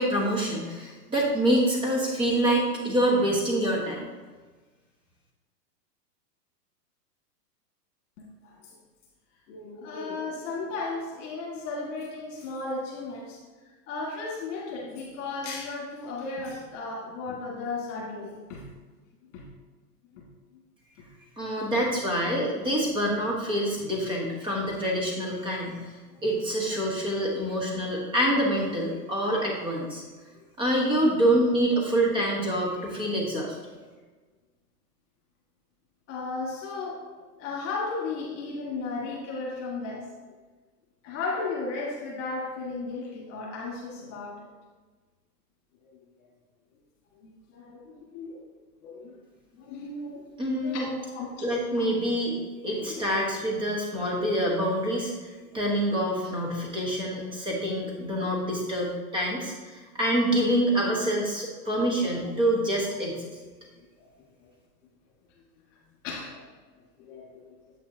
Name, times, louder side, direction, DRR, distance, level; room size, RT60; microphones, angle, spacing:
voice 1, 0.0-4.1 21.4-25.9 26.2-30.0 30.6-33.6 50.4-50.9 51.4-52.4 52.6-55.1 55.5-63.3, right 1 dB, 10° right, -2 dB, 1.1 m, -26 dB
voice 2, 8.2-8.8 9.5-13.4 13.9-18.6 19.3-19.4 20.1-20.2 21.4-21.8 24.2-24.3 30.3-30.4 36.1-37.1 37.4-40.1 41.0-44.5 45.8-46.0 47.3-48.4 48.8-49.2 49.5-50.2 50.6-51.5 51.8-51.9 52.7-53.0 55.5-55.6 61.8-61.9 63.8-64.1 64.4-64.5 66.0-66.5 67.0-67.5, left 3 dB, 45° left, -3 dB, 1.8 m, -35 dB
8.1 x 6.1 x 2.7 m, 1.3 s
hypercardioid pair, 150°, 49 cm